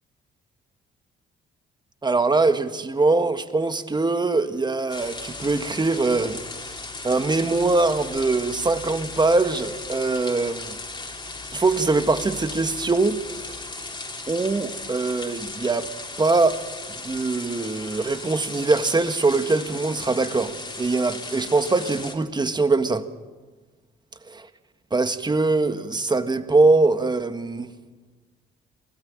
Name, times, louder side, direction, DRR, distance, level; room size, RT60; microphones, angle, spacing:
voice 1, 2.0-6.8 7.0-10.8 11.5-13.2 14.3-15.9 16.2-16.6 16.9-23.0 24.3-24.5 24.9-27.7, right 3 dB, 20° right, 1.7 m, -22 dB
sound 1, 4.9-22.1, left 3 dB, 20° left, 3.4 m, -36 dB
24.0 x 17.5 x 9.0 m
cardioid pair, 90°, 20 cm